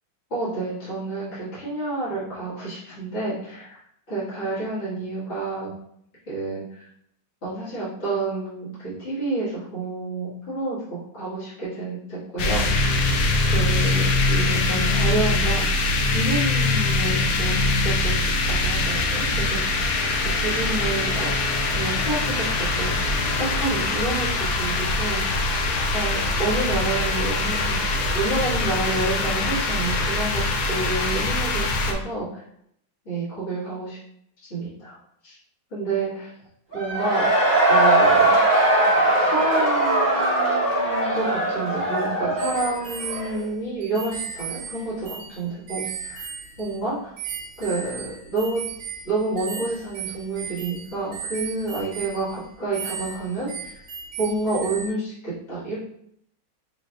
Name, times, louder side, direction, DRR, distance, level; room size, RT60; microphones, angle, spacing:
voice 1, 0.3-3.8 4.1-5.7 6.3-6.9 7.4-12.9 13.5-15.7 16.0-17.5 17.8-19.9 20.3-25.2 25.9-27.8 28.1-30.4 30.7-32.4 33.1-34.0 34.5-35.0 35.2-35.4 35.7-36.3 36.7-37.2 37.7-38.3 39.2-46.3 46.6-47.1 47.6-48.6 49.0-53.7 54.2-55.8, right 2 dB, 35° left, -11 dB, 1.8 m, -29 dB
sound 1, 12.4-31.9, left 2 dB, 70° left, 1.0 m, -23 dB
Cheering / Crowd, 36.7-43.4, right 2 dB, 30° right, 1.0 m, -20 dB
sound 2, 42.4-46.9 47.2-54.9, right 8 dB, 80° right, 1.4 m, -36 dB
4.1 x 3.3 x 2.4 m, 0.73 s
omnidirectional pair, 2.2 m